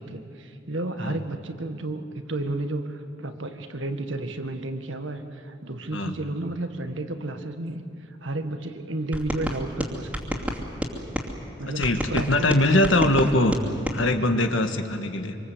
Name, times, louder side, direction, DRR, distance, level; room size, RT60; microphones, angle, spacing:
voice 1, 0.0-7.8 8.2-10.4 11.6-13.1, right 2 dB, 80° right, 7 dB, 1.7 m, -32 dB
sound 1, 9.1-11.3 11.8-14.0, equal, 5° right, 2.7 m, -30 dB
voice 2, 11.8-13.5 13.9-15.4, left 1 dB, 80° left, 6 dB, 1.8 m, -22 dB
26.0 x 25.5 x 8.1 m, 2.6 s
head